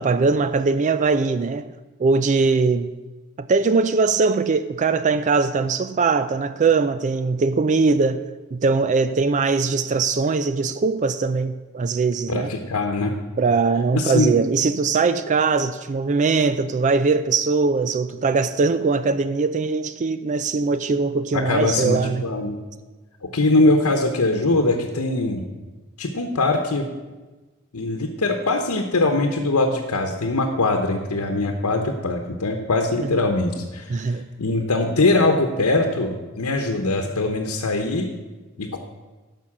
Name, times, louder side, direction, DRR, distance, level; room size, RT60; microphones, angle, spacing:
voice 1, 0.0-1.7 2.0-2.9 3.4-8.3 8.5-12.5 13.4-22.3 33.0-33.3 33.9-34.3, right 4 dB, 35° right, 0.4 m, -21 dB
voice 2, 12.3-13.1 13.9-14.4 21.3-22.6 23.2-25.4 26.0-26.9 27.7-38.1 38.6-38.8, left 2 dB, 90° left, 1.0 m, -22 dB
12.0 x 5.5 x 7.3 m
head